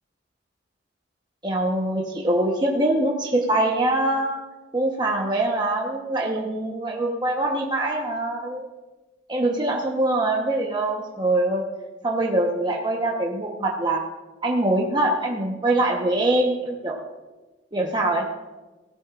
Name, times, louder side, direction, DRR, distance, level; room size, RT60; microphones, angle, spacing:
voice 1, 1.4-4.3 4.7-8.6 9.3-11.6 12.0-14.0 14.4-16.9 17.7-18.2, right 1 dB, 25° right, -1 dB, 1.1 m, -23 dB
17.5 x 13.5 x 2.5 m, 1.2 s
head